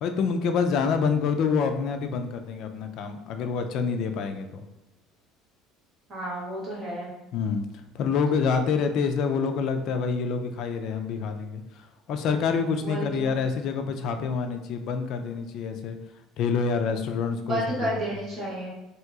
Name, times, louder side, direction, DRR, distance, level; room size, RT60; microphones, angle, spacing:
voice 1, 0.0-4.6 7.3-7.7 7.9-16.0 16.4-18.0, left 5 dB, 50° left, 6 dB, 0.3 m, -27 dB
voice 2, 6.1-7.1 12.8-13.3 17.5-18.7, right 1 dB, 25° right, -7 dB, 1.4 m, -31 dB
2.9 x 2.7 x 3.5 m, 0.97 s
cardioid pair, 165°, 0 cm